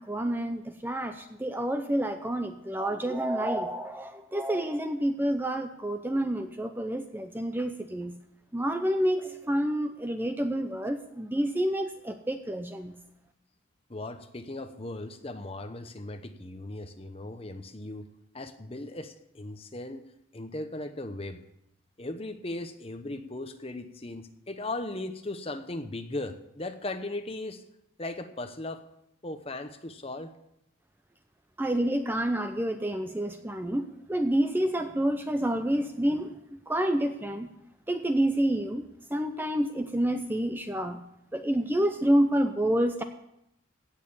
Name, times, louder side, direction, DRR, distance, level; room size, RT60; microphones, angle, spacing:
voice 1, 0.0-8.1 8.5-13.0 31.6-36.4 36.7-37.5 37.9-38.8 39.1-41.0 41.3-43.0, right 1 dB, 10° right, 7 dB, 0.6 m, -28 dB
voice 2, 13.9-18.1 18.3-20.0 20.3-21.4 22.0-27.6 28.0-28.8 29.2-30.3, left 2 dB, 30° left, 8 dB, 0.9 m, -37 dB
16.5 x 6.7 x 7.2 m, 0.81 s
head